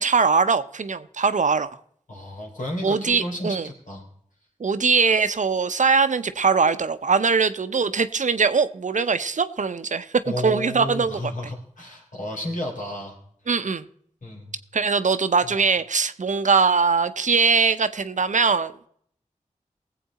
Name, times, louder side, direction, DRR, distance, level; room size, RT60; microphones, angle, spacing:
voice 1, 0.0-1.7 2.8-3.7 4.6-10.1 10.4-11.3 13.5-13.8 14.7-18.7, right 5 dB, 70° right, 12 dB, 0.7 m, -21 dB
voice 2, 2.1-4.1 10.3-13.2 14.2-14.6, left 1 dB, 75° left, -1 dB, 3.5 m, -32 dB
18.5 x 7.8 x 4.1 m, 0.65 s
cardioid pair, 40°, 14 cm